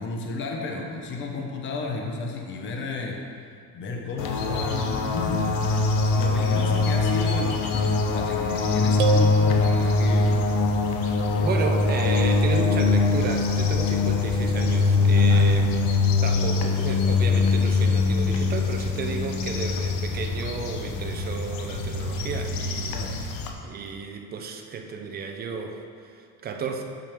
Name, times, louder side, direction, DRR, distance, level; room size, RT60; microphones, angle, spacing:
voice 1, 0.0-3.2 3.7-5.5 6.1-10.3 11.3-11.6 12.5-12.7 15.1-15.5 22.9-23.1, left 3 dB, 30° left, 1 dB, 0.8 m, -33 dB
sound 1, 4.2-23.5, left 3 dB, 60° left, 0.9 m, -23 dB
sound 2, 9.0-10.5, right 4 dB, 80° right, 0.6 m, -28 dB
voice 2, 11.4-23.3 23.6-26.8, right 5 dB, 25° right, 4 dB, 0.5 m, -33 dB
8.9 x 6.1 x 3.4 m, 2.3 s
cardioid pair, 160°, 39 cm